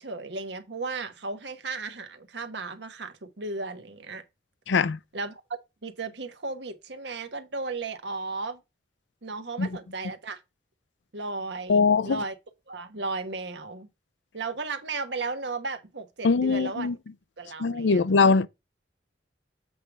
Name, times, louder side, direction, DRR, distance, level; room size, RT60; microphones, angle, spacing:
voice 1, 0.0-4.2 5.1-5.4 5.8-8.6 9.2-10.4 11.1-12.3 12.7-13.9 14.3-16.9 17.4-18.1, right 3 dB, 75° right, 1.2 m, -35 dB
voice 2, 4.7-5.0 9.6-9.7 11.7-12.2 16.2-17.0 17.6-18.5, left 4 dB, 80° left, 0.5 m, -22 dB
7.7 x 3.4 x 5.9 m
head